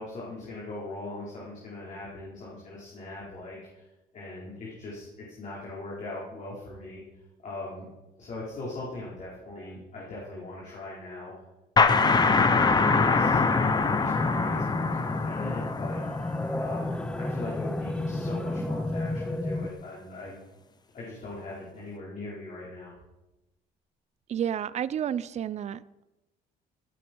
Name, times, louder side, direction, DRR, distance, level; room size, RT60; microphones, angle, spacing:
voice 1, 0.0-3.8 4.1-7.9 8.2-11.3 11.8-13.4 13.7-16.0 16.6-20.3 20.9-22.9, left 2 dB, 45° left, -5 dB, 4.7 m, -40 dB
sound 1, 11.8-17.2, left 4 dB, 25° left, 1.0 m, -24 dB
sound 2, 14.1-19.7, left 1 dB, 5° left, 0.6 m, -32 dB
voice 2, 24.3-26.0, right 9 dB, 40° right, 17 dB, 0.5 m, -31 dB
16.0 x 11.5 x 4.7 m, 1.0 s
cardioid pair, 110°, 17 cm